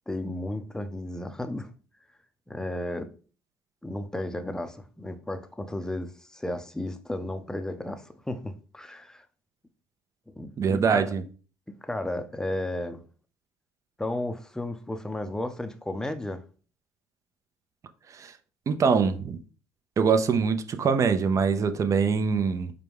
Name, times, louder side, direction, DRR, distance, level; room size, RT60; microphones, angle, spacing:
voice 1, 0.1-1.7 2.5-3.1 3.8-9.3 10.3-11.1 11.8-13.0 14.0-16.4, left 1 dB, 5° left, 0.6 m, -33 dB
voice 2, 10.6-11.2 18.1-18.3 18.7-19.4 20.0-22.7, right 5 dB, 40° right, 0.6 m, -23 dB
4.8 x 2.2 x 3.5 m
hypercardioid pair, 65°, 8 cm